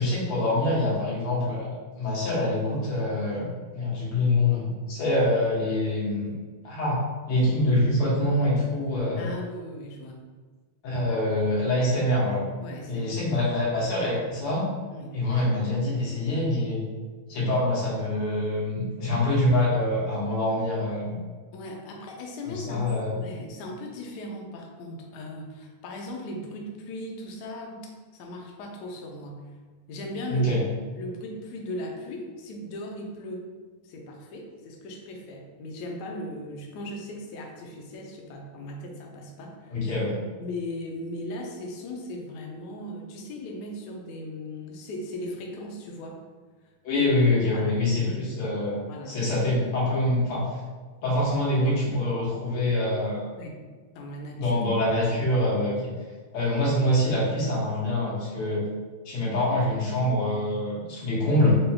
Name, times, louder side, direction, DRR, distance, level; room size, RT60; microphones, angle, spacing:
voice 1, 0.0-6.3 6.6-9.3 10.8-12.4 12.9-14.7 15.1-16.8 17.3-21.2 22.4-23.1 30.3-30.6 39.7-40.2 46.8-50.5 51.0-53.3 54.4-55.9 56.3-58.6 59.1-61.6, left 1 dB, 90° left, -6 dB, 2.1 m, -25 dB
voice 2, 9.2-10.3 12.6-13.4 14.9-15.2 21.5-27.8 28.1-29.6 29.9-30.6 31.0-33.5 33.8-39.8 40.4-46.2 47.0-47.1 47.5-47.7 48.9-49.2 53.4-53.6 53.9-54.6, left 1 dB, 70° left, 0 dB, 1.0 m, -38 dB
5.0 x 2.2 x 2.7 m, 1.4 s
omnidirectional pair, 2.3 m